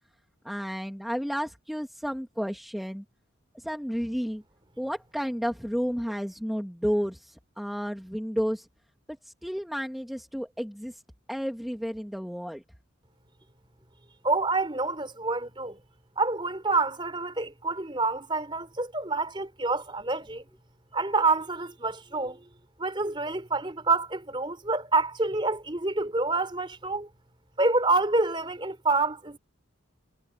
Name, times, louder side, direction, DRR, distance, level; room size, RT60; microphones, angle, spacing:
voice 1, 0.4-3.0 3.5-4.4 4.8-8.7 9.2-11.0 11.3-12.6, equal, ahead, 1.6 m, -32 dB
voice 2, 14.2-15.8 16.2-20.4 20.9-22.4 22.8-27.1 27.6-29.4, right 3 dB, 25° right, 3.7 m, -27 dB
head